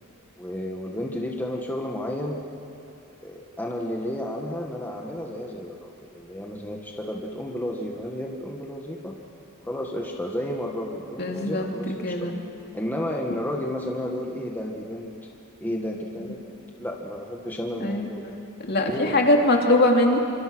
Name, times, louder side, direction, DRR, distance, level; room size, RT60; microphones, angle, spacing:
voice 1, 0.4-2.4 3.2-9.2 9.6-12.3 12.7-15.2 15.6-16.4 16.8-18.4 18.8-19.3, left 1 dB, 10° left, 0 dB, 1.6 m, -32 dB
voice 2, 11.2-12.4 17.8-18.1 18.6-20.2, left 1 dB, 50° left, 1 dB, 2.8 m, -22 dB
26.5 x 26.0 x 6.3 m, 2.7 s
head